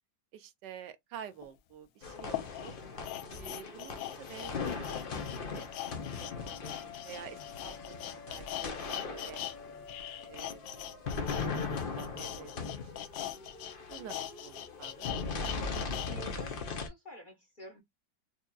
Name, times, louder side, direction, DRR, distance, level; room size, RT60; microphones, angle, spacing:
voice 1, 0.3-2.8 3.3-5.0 5.5-9.4 10.1-11.1 11.4-13.3 13.7-15.1, right 9 dB, 75° right, 1.2 m, -50 dB
sound 1, 1.4-1.5 2.2-9.6 9.8-16.1 16.5-16.6, left 12 dB, 90° left, 1.3 m, -41 dB
sound 2, 2.0-16.9, left 4 dB, 55° left, 0.6 m, -39 dB
voice 2, 16.0-17.8, equal, 35° left, 0.9 m, -50 dB
4.7 x 2.8 x 2.3 m
omnidirectional pair, 2.0 m